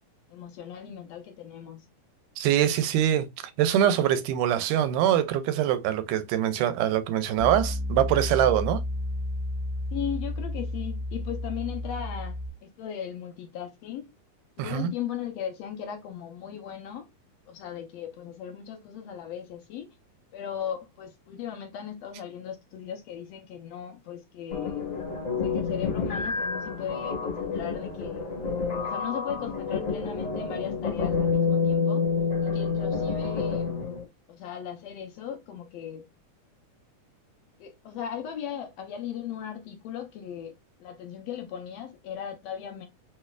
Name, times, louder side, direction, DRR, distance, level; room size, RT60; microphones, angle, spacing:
voice 1, 0.3-1.8 9.9-14.1 14.6-17.1 17.5-20.0 20.3-24.9 25.4-28.3 28.8-32.0 32.4-33.7 34.3-36.0 37.6-40.5 40.8-42.9, left 9 dB, 75° left, 1.6 m, -37 dB
voice 2, 2.4-3.3 3.6-8.8 14.6-14.9, right 11 dB, 90° right, 2.1 m, -24 dB
Piano, 7.4-12.5, left 1 dB, 55° right, 1.7 m, -32 dB
sound 1, 24.5-34.0, left 5 dB, 40° left, 1.2 m, -28 dB
5.9 x 3.2 x 2.3 m
omnidirectional pair, 3.6 m